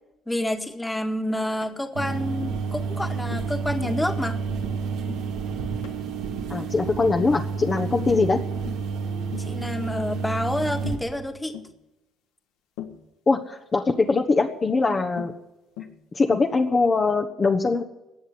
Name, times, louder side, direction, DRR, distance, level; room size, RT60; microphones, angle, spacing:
voice 1, 0.3-4.4 9.5-11.5 14.8-15.0, left 1 dB, 10° left, 5 dB, 1.8 m, -28 dB
Tap, 1.6-1.8 2.4-2.6 3.3-3.5 3.8-4.1 4.5-4.7 5.1-5.3 5.8-6.0 6.5-6.8 7.2-7.4 8.0-8.2 8.6-8.9 9.3-9.5 10.0-10.2 10.8-11.1 11.5-11.7 12.8-13.0 14.1-14.4 15.2-15.4 15.8-16.0 16.3-16.6, left 11 dB, 85° left, 1.5 m, -39 dB
sound 1, 2.0-11.0, right 5 dB, 80° right, 2.1 m, -30 dB
voice 2, 6.5-8.4 13.3-15.3 16.1-17.8, left 3 dB, 35° left, 3 dB, 1.3 m, -22 dB
18.5 x 6.7 x 9.8 m, 0.96 s
supercardioid pair, 65°, 0 cm